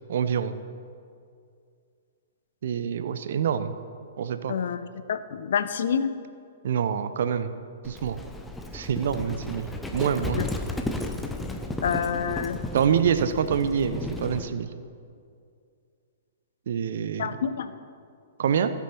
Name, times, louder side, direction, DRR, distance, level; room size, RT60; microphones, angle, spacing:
voice 1, 0.1-0.6 2.6-3.7 4.2-4.5 6.6-7.6 7.8-8.2 8.7-9.7 9.9-10.4 12.7-14.7 16.7-17.4 18.4-18.7, right 7 dB, 55° right, 11 dB, 0.6 m, -26 dB
voice 2, 4.5-4.8 5.1-6.1 10.3-10.5 11.8-12.6 17.2-17.7, left 7 dB, 55° left, 12 dB, 0.5 m, -27 dB
Livestock farm animals working animals, 7.8-14.5, left 2 dB, 5° left, 0.7 m, -34 dB
15.5 x 6.9 x 4.5 m, 2.3 s
figure-of-eight pair, 110°, 0 cm